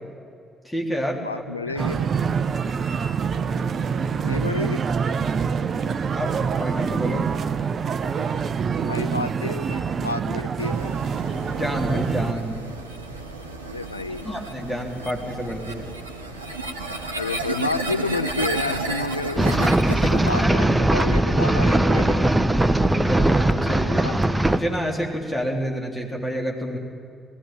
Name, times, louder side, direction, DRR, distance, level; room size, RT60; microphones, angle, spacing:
voice 1, 0.6-1.2 1.7-1.8 6.1-7.3 11.5-12.7 14.2-15.9 20.4-20.9 21.2-21.5 22.2-22.3 23.0-24.1 24.5-26.8, equal, 15° left, 0 dB, 3.5 m, -29 dB
voice 2, 1.2-2.1 4.2-4.8 8.8-11.0 13.6-14.3 16.8-22.3 23.9-24.2, left 3 dB, 85° left, 12 dB, 0.4 m, -30 dB
sound 1, 1.8-12.3, right 6 dB, 45° right, 0.7 m, -26 dB
sound 2, 10.6-20.4, right 2 dB, 85° right, 0.9 m, -32 dB
sound 3, 19.4-24.6, right 1 dB, 10° right, 1.2 m, -19 dB
19.0 x 15.5 x 9.1 m, 2.4 s
figure-of-eight pair, 45°, 0 cm